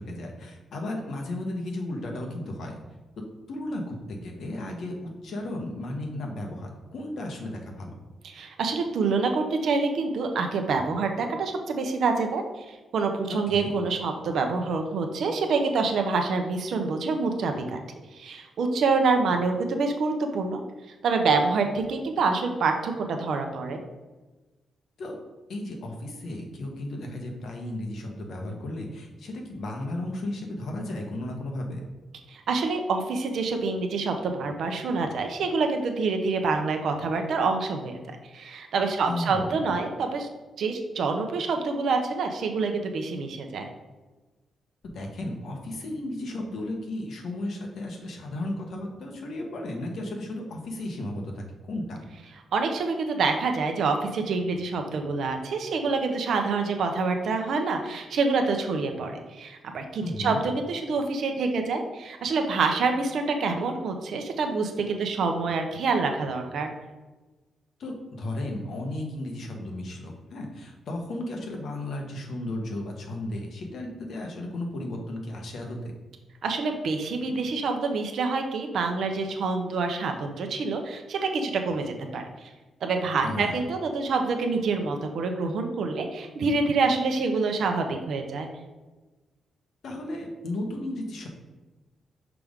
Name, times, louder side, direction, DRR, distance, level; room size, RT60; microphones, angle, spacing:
voice 1, 0.0-2.7 3.5-7.9 13.3-13.7 25.0-25.1 25.5-31.8 39.0-39.6 44.8-52.0 60.0-60.4 67.8-75.8 83.2-83.5 89.8-91.3, left 1 dB, 55° left, 1 dB, 1.2 m, -34 dB
voice 2, 8.2-17.8 18.1-20.6 21.0-23.8 32.3-38.0 38.3-40.3 40.6-43.7 52.5-66.7 76.4-82.5 82.8-88.5, right 4 dB, 60° right, 5 dB, 0.7 m, -27 dB
5.9 x 5.2 x 3.6 m, 1.2 s
wide cardioid pair, 170°, 0 cm